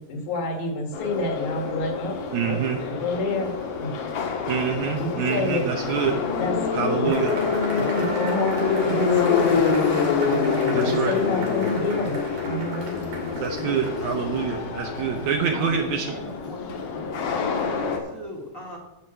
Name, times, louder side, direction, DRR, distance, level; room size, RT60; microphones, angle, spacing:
voice 1, 0.1-3.9 4.8-5.6 6.3-6.5 6.9-7.3 7.7-9.7 10.2-12.2 12.4-13.0, left 2 dB, 60° left, 2 dB, 3.2 m, -29 dB
Subway metro underground, 0.9-18.0, left 5 dB, 75° left, 3.1 m, -26 dB
voice 2, 2.3-2.8 4.5-6.2 6.7-7.3 10.7-11.2 13.4-16.1, right 7 dB, 70° right, 4 dB, 2.0 m, -26 dB
Cheering / Applause / Crowd, 7.1-14.3, right 2 dB, 90° right, 4.4 m, -36 dB
voice 3, 15.5-17.1 17.4-18.8, left 1 dB, 30° left, -1 dB, 1.7 m, -39 dB
14.0 x 5.1 x 7.5 m, 0.94 s
omnidirectional pair, 4.0 m